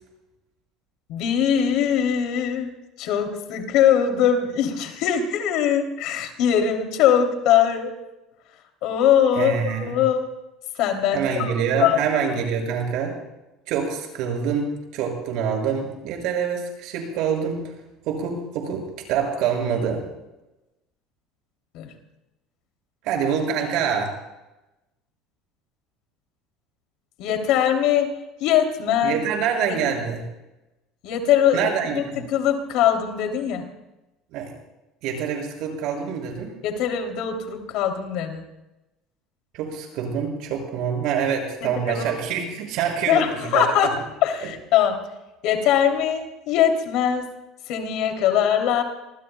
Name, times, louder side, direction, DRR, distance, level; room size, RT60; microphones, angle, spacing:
voice 1, 1.1-2.7 3.0-7.9 8.8-10.3 10.8-12.0 21.7-21.9 27.2-28.1 28.4-29.2 29.7-29.8 31.0-31.7 31.9-32.0 32.3-33.6 36.6-38.4 41.6-42.1 43.1-43.9 44.2-45.0 45.4-47.3 47.7-48.8, left 9 dB, 70° left, 4 dB, 3.0 m, -21 dB
voice 2, 9.4-10.0 11.1-13.2 13.7-14.7 14.9-17.7 18.1-20.0 23.0-24.1 29.0-30.2 31.5-32.2 34.3-34.5 35.0-36.6 39.5-43.6 44.4-44.5, right 7 dB, 65° right, 1 dB, 6.5 m, -26 dB
27.5 x 20.5 x 2.3 m, 0.98 s
supercardioid pair, 110°, 0 cm